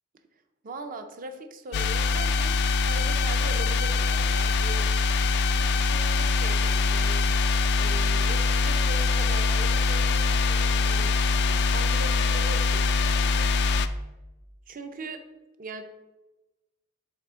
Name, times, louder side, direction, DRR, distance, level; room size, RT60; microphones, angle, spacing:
voice 1, 0.6-4.9 5.5-7.2 7.8-11.2 11.5-13.5 14.7-15.2 15.6-15.8, right 2 dB, 40° right, 7 dB, 0.6 m, -40 dB
sound 1, 1.7-13.9, left 4 dB, 50° left, 0.3 m, -23 dB
6.5 x 4.1 x 3.6 m, 1.1 s
head